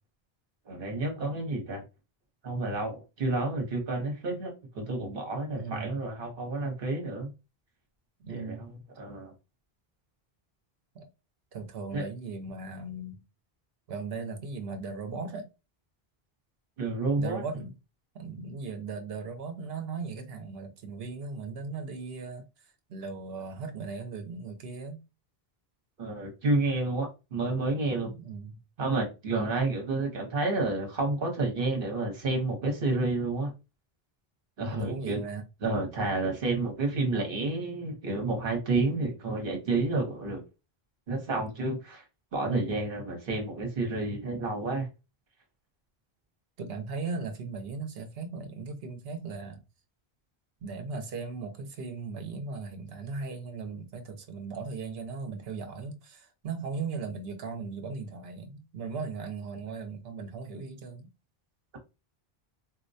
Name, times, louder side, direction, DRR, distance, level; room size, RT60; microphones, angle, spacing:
voice 1, 0.7-1.8 2.4-7.3 8.3-9.3 11.9-12.1 16.8-17.4 26.0-28.1 28.8-33.5 34.6-35.2 35.6-40.4 41.1-42.0 42.3-44.9, right 2 dB, 60° right, 1.2 m, -30 dB
voice 2, 5.5-6.0 8.2-8.7 10.9-11.1 11.5-13.2 13.9-15.5 17.1-17.7 18.1-22.4 22.9-25.0 28.1-28.6 29.4-29.7 34.7-35.4 46.6-49.6 50.6-61.1, right 4 dB, 75° right, 0.9 m, -38 dB
4.2 x 2.2 x 2.6 m
omnidirectional pair, 1.0 m